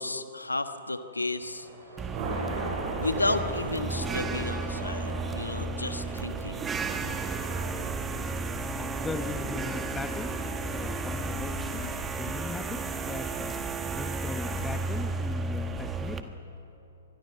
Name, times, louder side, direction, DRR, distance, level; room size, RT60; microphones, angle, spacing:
voice 1, 0.0-1.7 3.0-6.7 11.7-12.0, left 2 dB, 90° left, 10 dB, 1.3 m, -33 dB
Thunder, 1.3-12.6, right 2 dB, 40° right, 6.7 m, -40 dB
sound 1, 2.0-16.2, right 3 dB, 15° right, 1.4 m, -33 dB
voice 2, 8.8-13.6 13.9-16.4, left 4 dB, 10° left, 8 dB, 1.3 m, -39 dB
25.0 x 20.0 x 7.1 m, 3.0 s
figure-of-eight pair, 115°, 0 cm